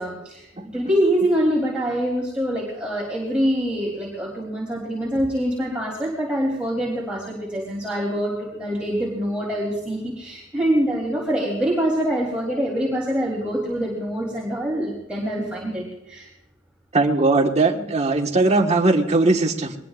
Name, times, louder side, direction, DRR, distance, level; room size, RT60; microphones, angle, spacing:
voice 1, 0.0-16.3, equal, 5° right, -4 dB, 3.5 m, -25 dB
voice 2, 16.9-19.8, right 3 dB, 35° right, 3 dB, 1.5 m, -19 dB
23.0 x 20.5 x 2.5 m, 0.91 s
head